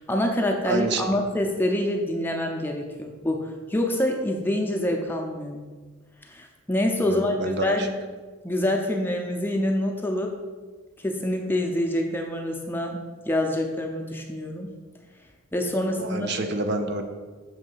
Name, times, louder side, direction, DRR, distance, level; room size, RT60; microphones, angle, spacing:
voice 1, 0.0-5.6 6.3-7.4 7.6-7.9 8.4-10.3 11.0-13.0 13.3-14.7 15.5-16.3, left 1 dB, 10° left, 2 dB, 0.4 m, -26 dB
voice 2, 0.6-1.1 7.0-7.9 16.0-17.0, right 2 dB, 50° right, 5 dB, 0.5 m, -28 dB
6.3 x 3.2 x 5.3 m, 1.4 s
head